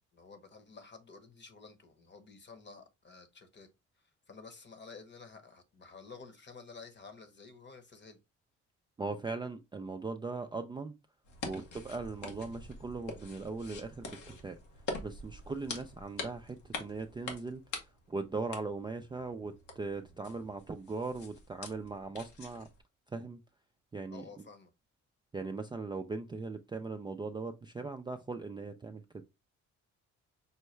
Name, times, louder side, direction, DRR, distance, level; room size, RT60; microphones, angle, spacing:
voice 1, 0.0-3.7 4.0-8.2 24.1-24.7, left 4 dB, 35° left, 0.9 m, -52 dB
voice 2, 9.0-10.9 11.4-14.6 15.0-22.7 23.1-23.4 23.9-24.2 25.3-29.0, right 3 dB, 15° right, 0.3 m, -39 dB
sound 1, 11.2-22.8, left 3 dB, 85° left, 1.1 m, -45 dB
5.5 x 2.1 x 3.1 m
cardioid pair, 90°, 30 cm